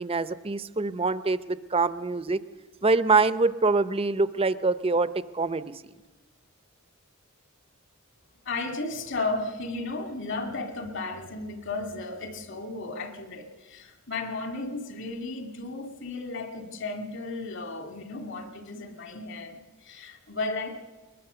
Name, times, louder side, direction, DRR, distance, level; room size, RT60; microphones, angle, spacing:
voice 1, 0.0-2.4 2.8-5.7, right 3 dB, 25° right, 13 dB, 0.6 m, -25 dB
voice 2, 8.5-20.8, left 3 dB, 60° left, 5 dB, 2.3 m, -34 dB
21.5 x 21.5 x 6.9 m, 1.2 s
head